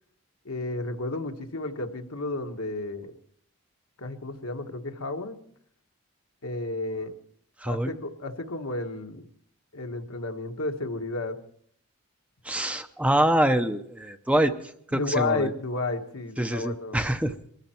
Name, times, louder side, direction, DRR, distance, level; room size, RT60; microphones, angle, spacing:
voice 1, 0.4-3.2 4.0-5.4 6.4-7.1 7.7-9.3 9.7-11.4 14.9-17.0, left 2 dB, 70° left, 5 dB, 1.5 m, -32 dB
voice 2, 7.6-7.9 12.4-15.5 16.4-17.3, right 1 dB, 5° right, 8 dB, 0.7 m, -25 dB
22.5 x 14.0 x 4.4 m, 0.63 s
head